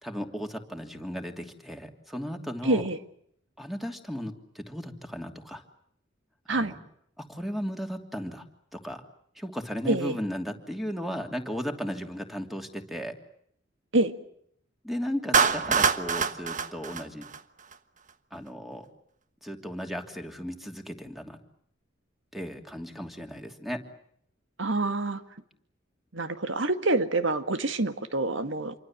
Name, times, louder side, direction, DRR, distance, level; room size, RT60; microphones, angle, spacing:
voice 1, 0.0-2.9 3.6-5.6 6.5-6.8 7.2-8.4 8.7-9.0 9.3-13.2 14.8-17.3 18.3-18.9 19.4-21.4 22.3-23.8, equal, ahead, 4 dB, 2.9 m, -35 dB
voice 2, 2.6-3.0 6.5-6.7 9.9-10.2 13.9-14.1 24.6-25.2 26.1-28.7, right 2 dB, 85° right, 9 dB, 2.0 m, -26 dB
Clapping, 15.3-17.7, right 5 dB, 40° right, 1.3 m, -25 dB
27.5 x 24.5 x 7.4 m, 0.69 s
head